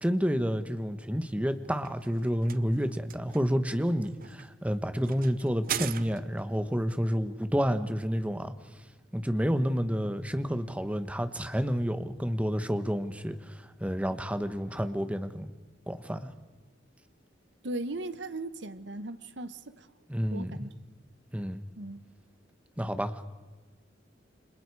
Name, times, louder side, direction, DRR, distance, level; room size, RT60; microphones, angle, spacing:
voice 1, 0.0-8.5 9.1-15.5 15.9-16.3 20.1-20.5 21.3-21.6 22.8-23.3, equal, 5° right, 1.2 m, -30 dB
sound 1, 1.4-6.6, right 9 dB, 50° right, 0.8 m, -40 dB
voice 2, 17.6-19.9 20.3-20.7 21.8-22.0, right 2 dB, 70° right, 1.2 m, -37 dB
29.5 x 26.5 x 4.8 m
head